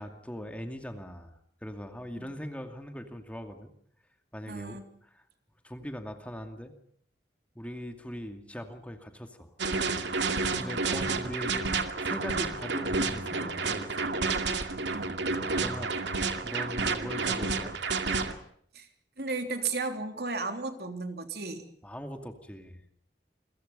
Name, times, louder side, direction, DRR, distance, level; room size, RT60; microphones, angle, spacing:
voice 1, 0.0-3.7 4.3-5.2 5.6-6.7 7.5-9.6 10.5-11.7 12.0-14.1 15.5-15.9 16.4-17.8 21.8-22.8, equal, 10° left, 5 dB, 2.4 m, -41 dB
voice 2, 4.5-4.8 10.3-10.9 14.9-15.2 18.7-18.9 19.2-21.6, right 3 dB, 60° right, 6 dB, 3.4 m, -35 dB
sound 1, 9.6-18.3, right 4 dB, 85° right, 2.4 m, -30 dB
29.5 x 23.0 x 5.5 m, 0.65 s
head